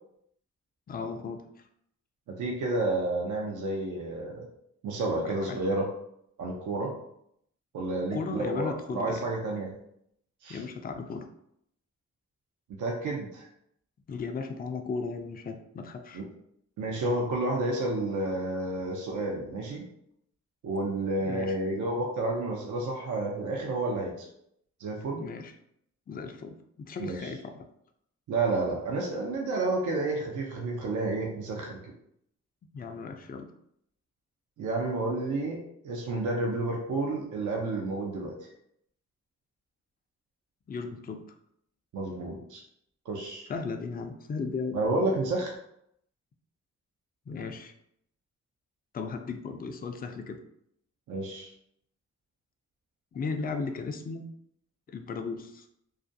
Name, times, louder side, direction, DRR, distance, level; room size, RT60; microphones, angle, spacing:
voice 1, 0.9-1.4 5.5-5.6 8.1-9.2 10.5-11.3 14.1-16.2 21.2-21.6 25.1-25.5 26.1-27.7 32.7-33.5 40.7-41.3 43.5-44.8 47.3-47.7 48.9-50.4 53.1-54.3 54.9-55.7, left 4 dB, 30° left, 6 dB, 0.4 m, -36 dB
voice 2, 2.4-4.4 4.8-5.9 6.4-6.9 7.7-9.7 10.4-10.6 12.8-13.5 16.1-16.2 16.8-19.8 20.6-24.3 24.8-25.2 27.0-27.3 28.3-31.8 34.6-35.6 35.8-38.3 41.9-42.6 43.1-43.5 44.7-45.5 51.1-51.5, right 2 dB, 80° right, -1 dB, 0.5 m, -30 dB
2.4 x 2.1 x 2.6 m, 0.73 s
cardioid pair, 50°, 30 cm